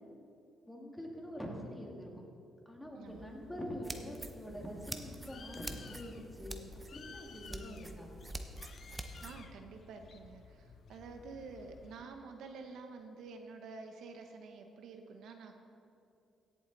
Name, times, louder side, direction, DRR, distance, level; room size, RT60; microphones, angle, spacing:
voice 1, 0.7-2.2 2.7-6.6 6.9-8.1, equal, 5° left, 0 dB, 2.1 m, -45 dB
voice 2, 2.9-3.3 9.2-15.5, right 4 dB, 75° right, 5 dB, 0.9 m, -49 dB
Bird, 3.1-12.0, left 5 dB, 55° left, 0.6 m, -55 dB
sound 1, 3.8-9.4, right 1 dB, 15° right, 0.8 m, -46 dB
16.5 x 7.7 x 4.0 m, 2.5 s
cardioid pair, 90°, 0 cm